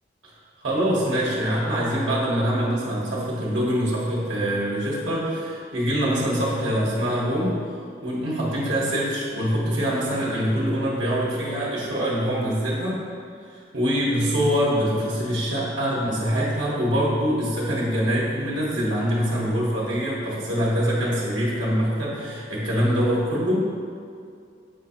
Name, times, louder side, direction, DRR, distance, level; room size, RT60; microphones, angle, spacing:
voice 1, 0.6-7.8 8.0-13.0 13.5-23.6, equal, 80° right, -6 dB, 1.4 m, -24 dB
7.3 x 2.8 x 5.7 m, 2.3 s
head